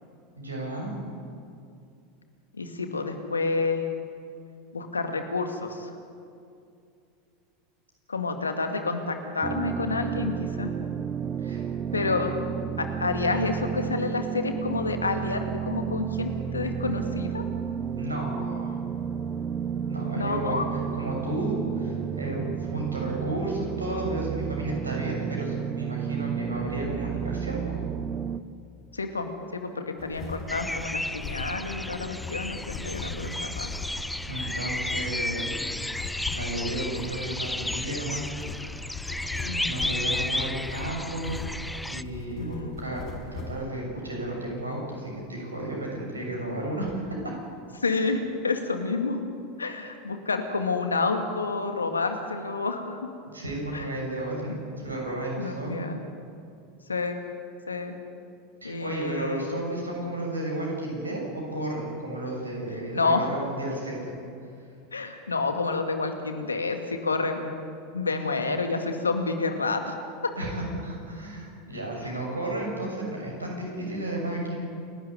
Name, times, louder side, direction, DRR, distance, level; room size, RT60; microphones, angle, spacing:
voice 1, 0.4-0.9 11.4-11.6 12.0-12.2 18.0-18.8 19.9-27.8 34.3-38.2 38.6-38.8 39.6-41.4 41.9-47.2 53.3-55.9 58.6-64.1 70.4-74.7, right 1 dB, 85° right, -1 dB, 7.2 m, -33 dB
voice 2, 2.5-3.9 4.7-5.9 8.1-10.7 11.9-12.4 12.8-17.4 20.1-20.6 28.9-29.3 29.5-33.7 39.4-39.9 42.4-42.8 47.8-49.2 49.6-53.0 53.7-53.9 55.4-56.0 56.9-57.2 57.7-57.9 58.6-59.5 62.9-63.3 64.9-67.5 67.9-70.3 72.0-72.1, left 3 dB, 85° left, 6 dB, 2.1 m, -29 dB
sound 1, 9.4-28.4, right 8 dB, 30° right, 0.8 m, -32 dB
sound 2, 30.0-43.6, left 3 dB, 40° left, 5.1 m, -39 dB
sound 3, 30.5-42.0, left 1 dB, 5° left, 0.5 m, -33 dB
28.5 x 12.5 x 9.6 m, 2.5 s
figure-of-eight pair, 80°, 0 cm